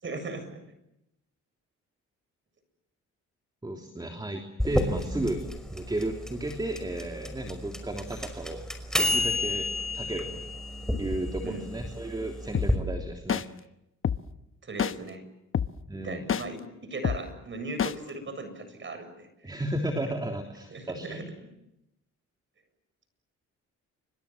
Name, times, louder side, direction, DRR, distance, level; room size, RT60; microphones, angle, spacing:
voice 1, 0.0-0.6 4.6-5.2 11.4-11.7 14.6-15.2 16.0-19.3 20.7-21.2, right 2 dB, 40° right, 10 dB, 7.4 m, -38 dB
voice 2, 3.6-5.4 5.7-8.6 9.0-9.7 9.9-10.4 11.0-13.5 15.9-16.3 19.4-21.2, right 1 dB, 15° right, 4 dB, 3.4 m, -33 dB
sound 1, 4.6-12.8, left 1 dB, ahead, 5.6 m, -30 dB
sound 2, 12.5-12.7 13.3-13.4 14.0-14.2 14.8-14.9 15.5-15.7 16.3-16.4 17.0-17.2 17.8-17.9, left 8 dB, 45° left, 1.1 m, -26 dB
29.0 x 25.5 x 7.4 m, 0.86 s
cardioid pair, 90°, 30 cm